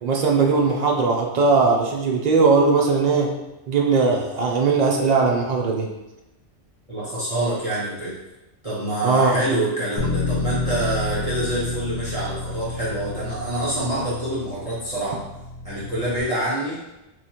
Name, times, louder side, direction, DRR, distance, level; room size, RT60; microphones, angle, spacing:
voice 1, 0.0-3.3 3.7-5.9 9.0-9.4, right 4 dB, 75° right, 0 dB, 0.3 m, -19 dB
voice 2, 6.9-8.1 8.6-15.2 15.6-16.8, right 1 dB, 35° right, -10 dB, 0.8 m, -26 dB
Bass guitar, 10.0-16.2, left 3 dB, 85° left, 0.9 m, -30 dB
3.0 x 2.3 x 4.1 m, 0.97 s
omnidirectional pair, 1.3 m